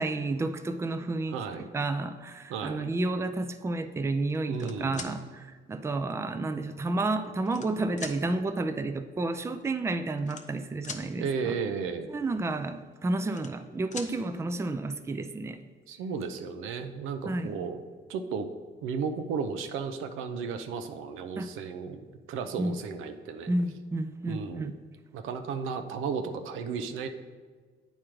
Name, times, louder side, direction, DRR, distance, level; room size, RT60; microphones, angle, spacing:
voice 1, 0.0-11.5 12.1-15.6 17.3-17.5 21.4-21.5 22.6-22.8 23.5-24.7, right 2 dB, 15° right, 9 dB, 0.4 m, -31 dB
voice 2, 1.3-1.7 2.5-2.9 4.5-5.2 11.2-12.1 15.9-17.8 18.1-18.5 18.8-23.5 24.3-24.7 25.1-27.1, right 5 dB, 90° right, 8 dB, 0.5 m, -34 dB
sound 1, 4.3-5.1 6.1-6.2 7.0-7.7 8.0-8.2 9.3-9.4 9.6-9.8 10.2-11.0 12.9-13.7 13.9-14.1 15.6-15.7 16.0-16.4, left 5 dB, 35° left, 0.7 m, -42 dB
8.7 x 3.0 x 4.9 m, 1.5 s
cardioid pair, 90°, 20 cm